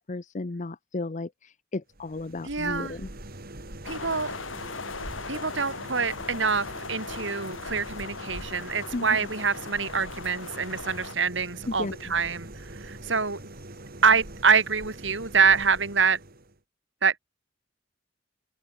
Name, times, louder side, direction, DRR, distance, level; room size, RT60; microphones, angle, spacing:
voice 1, 0.0-3.1 8.9-9.1 11.7-12.1, left 2 dB, 40° left, 0.7 m, -34 dB
sound 1, 1.9-16.6, right 1 dB, 50° right, 3.1 m, -43 dB
voice 2, 2.4-2.9 3.8-4.3 5.3-13.4 14.0-16.2 17.0-17.2, right 5 dB, 65° right, 2.8 m, -25 dB
sound 2, 3.8-11.1, left 4 dB, 85° left, 2.0 m, -39 dB
head